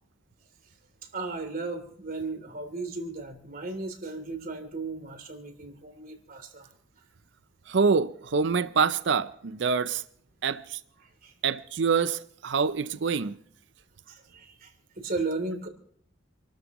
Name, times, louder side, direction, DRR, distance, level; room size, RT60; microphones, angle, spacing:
voice 1, 1.1-6.7 11.0-11.3 14.1-15.7, right 3 dB, 50° right, 3.0 m, -35 dB
voice 2, 7.7-9.3 9.6-10.0 10.4-10.6 11.4-13.3, right 5 dB, 65° right, 0.6 m, -25 dB
28.0 x 13.0 x 3.0 m
head